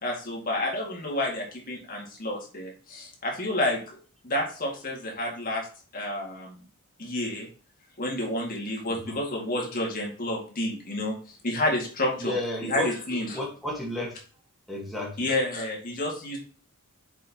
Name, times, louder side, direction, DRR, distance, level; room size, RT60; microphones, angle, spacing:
voice 1, 0.0-4.0 4.2-5.7 5.9-6.6 7.0-7.5 8.0-12.3 12.6-13.4 15.2-16.4, left 1 dB, 40° left, -1 dB, 2.1 m, -30 dB
voice 2, 8.9-9.2 12.2-12.9 13.3-14.2 14.7-15.3, left 1 dB, ahead, -4 dB, 1.6 m, -32 dB
7.4 x 5.4 x 3.0 m, 0.40 s
head